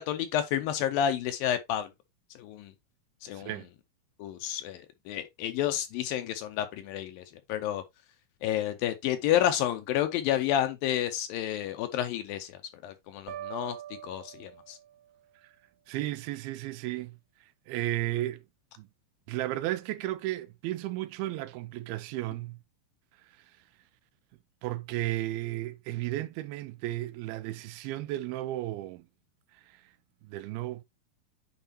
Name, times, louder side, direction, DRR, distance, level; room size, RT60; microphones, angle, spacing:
voice 1, 0.0-1.9 2.4-2.7 3.2-3.5 4.2-7.2 7.5-7.8 8.4-12.6 12.8-13.8 14.0-14.8, left 11 dB, 80° left, 2.3 m, -30 dB
voice 2, 3.3-3.7 15.9-17.2 17.7-18.4 18.8-18.9 19.3-22.6 24.6-29.1 29.7-29.8 30.2-30.8, right 16 dB, 85° right, 2.5 m, -34 dB
sound 1, 13.3-15.2, right 11 dB, 55° right, 2.2 m, -43 dB
9.0 x 4.7 x 2.8 m
omnidirectional pair, 4.4 m